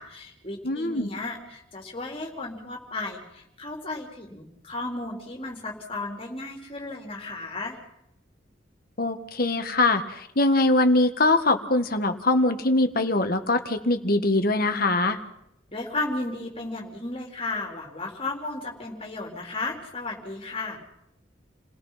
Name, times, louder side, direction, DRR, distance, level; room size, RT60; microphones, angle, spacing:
voice 1, 0.0-7.8 15.7-20.8, left 2 dB, 30° left, 1 dB, 4.0 m, -34 dB
voice 2, 0.6-1.1 9.0-15.2, left 2 dB, 50° left, 7 dB, 1.7 m, -22 dB
29.5 x 18.0 x 5.8 m, 0.80 s
head